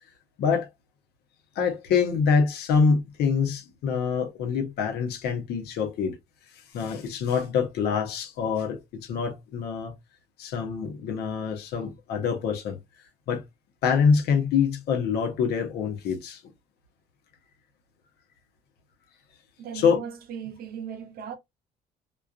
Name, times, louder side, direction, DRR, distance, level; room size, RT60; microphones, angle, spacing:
voice 1, 1.6-6.2 6.7-10.0 10.4-12.8 13.3-13.4 13.8-16.4 19.7-20.0, left 6 dB, 75° left, 0.9 m, -25 dB
voice 2, 19.6-21.4, right 8 dB, 60° right, 0.7 m, -37 dB
2.5 x 2.3 x 2.4 m
cardioid pair, 110°, 17 cm